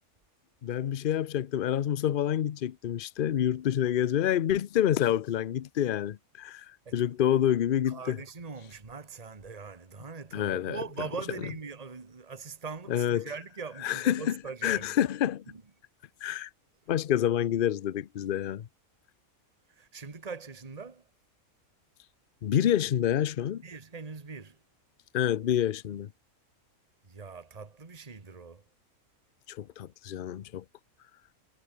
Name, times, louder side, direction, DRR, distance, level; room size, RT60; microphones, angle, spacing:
voice 1, 0.6-6.6 6.9-8.2 10.3-10.8 12.9-13.2 13.8-14.2 14.6-15.4 16.2-16.5 16.9-18.7 22.4-23.6 25.1-26.1 29.5-30.6, left 10 dB, 50° left, 0.7 m, -27 dB
voice 2, 7.8-15.0 15.5-15.6 19.7-21.1 23.6-24.6 27.0-28.6, right 5 dB, 25° right, 1.7 m, -41 dB
omnidirectional pair, 1.5 m